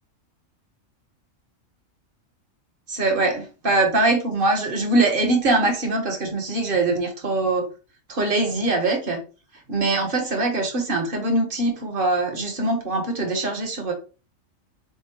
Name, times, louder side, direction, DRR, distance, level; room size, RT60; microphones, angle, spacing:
voice 1, 2.9-7.7 8.1-9.2 9.7-13.9, right 2 dB, 45° right, 4 dB, 1.1 m, -22 dB
4.0 x 3.6 x 2.9 m, 0.34 s
omnidirectional pair, 1.4 m